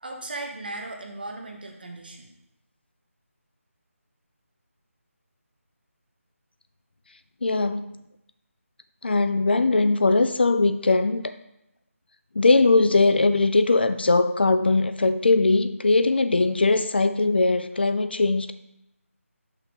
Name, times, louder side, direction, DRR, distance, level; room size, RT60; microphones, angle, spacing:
voice 1, 0.0-2.3, right 2 dB, 40° right, 2 dB, 0.9 m, -37 dB
voice 2, 7.4-7.9 9.0-11.3 12.4-18.5, left 3 dB, 45° left, 11 dB, 0.4 m, -20 dB
5.7 x 5.6 x 3.4 m, 0.83 s
figure-of-eight pair, 175°, 8 cm